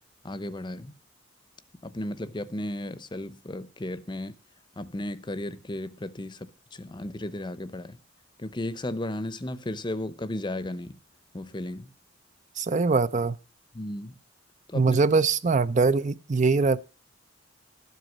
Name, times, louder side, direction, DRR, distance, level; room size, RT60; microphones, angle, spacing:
voice 1, 0.2-1.0 1.8-4.4 4.8-8.0 8.4-11.0 11.3-11.9 13.7-14.2 14.7-15.0, left 1 dB, 25° left, 0.7 m, -34 dB
voice 2, 12.6-13.4 14.7-16.8, right 4 dB, 40° right, 0.5 m, -22 dB
13.0 x 8.1 x 7.3 m
head